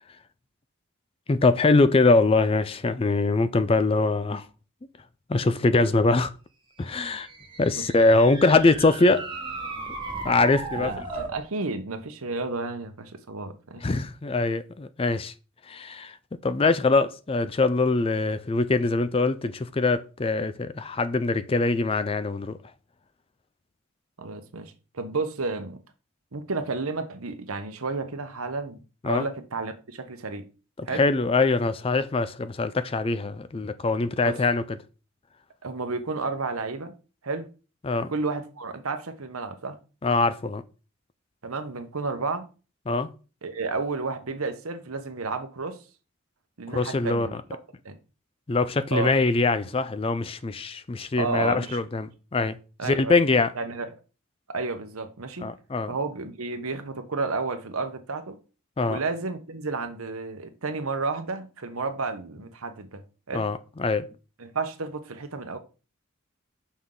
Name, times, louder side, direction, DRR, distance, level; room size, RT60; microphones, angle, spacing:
voice 1, 1.3-4.4 5.3-6.3 6.8-7.3 7.6-9.2 10.2-11.0 13.8-15.3 15.7-16.1 16.4-22.6 29.0-29.2 30.8-34.6 37.8-38.1 40.0-40.6 42.9-43.1 46.7-47.3 48.5-52.6 52.8-53.5 55.4-55.9 58.8-59.0 63.3-64.1, left 3 dB, 25° left, 0.4 m, -23 dB
sound 1, 7.0-11.4, right 3 dB, 20° right, 1.3 m, -36 dB
voice 2, 10.8-13.8 24.2-25.8 26.3-28.8 29.0-30.5 30.8-31.0 34.2-34.4 35.6-36.9 37.2-37.5 38.1-39.8 41.4-42.4 43.4-45.8 46.6-47.3 47.8-48.0 48.9-49.1 51.2-51.8 52.8-53.2 53.5-53.9 54.5-55.5 55.9-58.4 58.9-63.0 63.3-63.5 64.4-65.6, right 3 dB, 85° right, 1.0 m, -31 dB
6.2 x 5.7 x 3.8 m
head